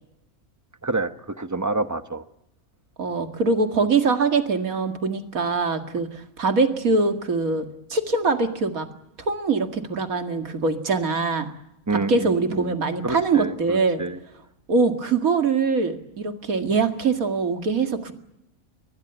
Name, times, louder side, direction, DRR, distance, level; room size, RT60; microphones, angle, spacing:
voice 1, 0.8-2.2 11.9-12.7 13.0-14.2, right 3 dB, 15° right, 10 dB, 0.9 m, -28 dB
voice 2, 3.0-8.9 9.3-11.5 12.1-14.0 14.7-18.1, right 4 dB, 90° right, 7 dB, 2.5 m, -23 dB
22.5 x 20.5 x 8.0 m, 0.84 s
omnidirectional pair, 1.4 m